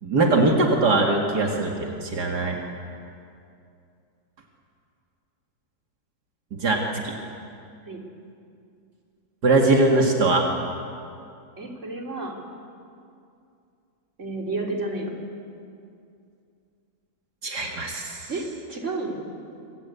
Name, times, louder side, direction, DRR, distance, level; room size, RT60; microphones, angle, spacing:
voice 1, 0.0-2.6 6.5-7.2 9.4-10.4 17.4-18.3, right 2 dB, 80° right, 0 dB, 2.7 m, -21 dB
voice 2, 11.6-12.4 14.2-15.1 18.3-19.3, right 2 dB, 45° right, 0 dB, 3.8 m, -31 dB
26.5 x 25.5 x 8.4 m, 2.5 s
omnidirectional pair, 1.7 m